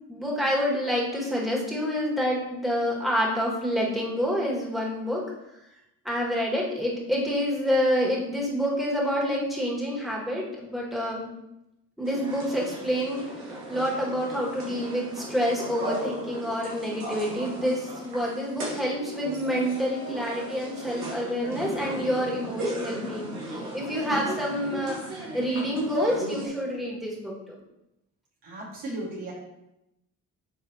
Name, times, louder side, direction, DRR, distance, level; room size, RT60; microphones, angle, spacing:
voice 1, 0.1-5.2 6.0-11.3 12.0-27.6, equal, ahead, -4 dB, 2.0 m, -28 dB
sound 1, 12.0-26.5, right 1 dB, 85° right, 1.4 m, -36 dB
voice 2, 28.4-29.3, right 1 dB, 65° right, -5 dB, 2.1 m, -35 dB
9.5 x 3.4 x 2.9 m, 0.89 s
hypercardioid pair, 45°, 42 cm